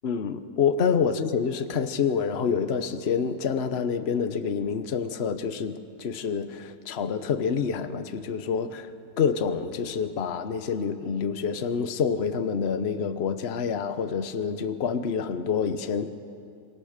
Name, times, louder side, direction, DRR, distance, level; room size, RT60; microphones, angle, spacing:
voice 1, 0.0-8.9 9.2-16.1, left 6 dB, 45° left, 10 dB, 1.2 m, -27 dB
27.0 x 24.0 x 6.7 m, 2.6 s
omnidirectional pair, 1.6 m